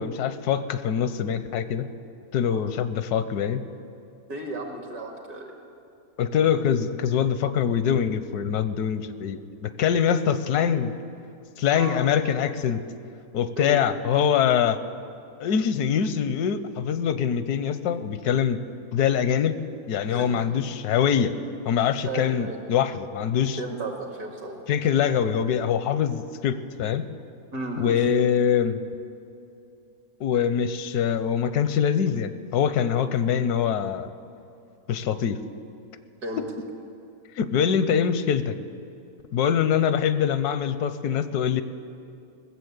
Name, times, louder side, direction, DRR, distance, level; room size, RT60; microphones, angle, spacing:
voice 1, 0.0-1.9 2.3-3.6 6.2-10.9 11.6-12.8 13.3-14.8 15.4-18.6 18.9-19.6 19.9-21.3 21.6-23.6 24.7-27.1 27.8-28.8 30.2-34.1 34.9-35.4 36.4-36.5 37.4-38.5 39.3-41.6, left 8 dB, 80° left, 12 dB, 1.2 m, -24 dB
voice 2, 4.3-5.5 11.7-12.0 13.6-13.8 20.1-20.5 22.0-22.6 23.6-24.6 27.5-28.0 33.0-33.1 36.2-36.4, right 2 dB, 75° right, 2 dB, 2.4 m, -34 dB
19.5 x 7.2 x 8.0 m, 2.6 s
omnidirectional pair, 1.7 m